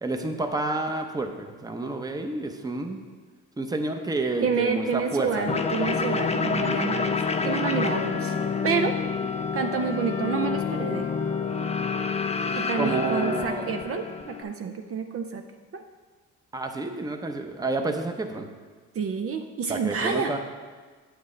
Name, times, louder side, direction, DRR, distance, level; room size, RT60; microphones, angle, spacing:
voice 1, 0.0-3.0 3.6-5.5 12.8-13.7 16.5-18.5 19.7-20.4, right 2 dB, 15° right, 5 dB, 0.7 m, -29 dB
Wind instrument woodwind instrument, 3.9-8.9 9.6-14.6, left 4 dB, 50° left, 0.8 m, -43 dB
voice 2, 4.4-8.4 8.6-8.9 9.5-11.1 12.5-15.4 15.7-15.8 18.9-20.4, right 6 dB, 50° right, 5 dB, 0.5 m, -28 dB
sound 1, 5.4-14.4, left 5 dB, 20° left, 0.5 m, -28 dB
8.4 x 8.0 x 3.2 m, 1.4 s
cardioid pair, 90°, 30 cm